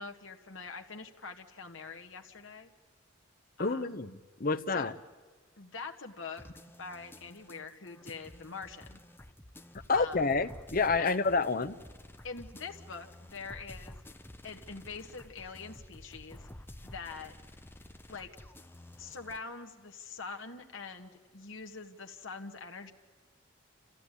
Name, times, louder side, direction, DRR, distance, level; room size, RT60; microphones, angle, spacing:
voice 1, 0.0-2.7 3.6-4.0 4.7-4.9 5.6-6.4 6.8-9.0 9.9-10.2 11.0-11.2 12.2-14.0 14.4-16.5 16.8-17.3 18.1-18.3 19.0-22.9, left 4 dB, 70° left, 1.6 m, -44 dB
voice 2, 3.6-4.9 9.9-11.8, left 4 dB, 45° left, 0.9 m, -29 dB
sound 1, 6.4-19.4, left 1 dB, 10° left, 0.7 m, -51 dB
29.0 x 14.5 x 9.9 m
head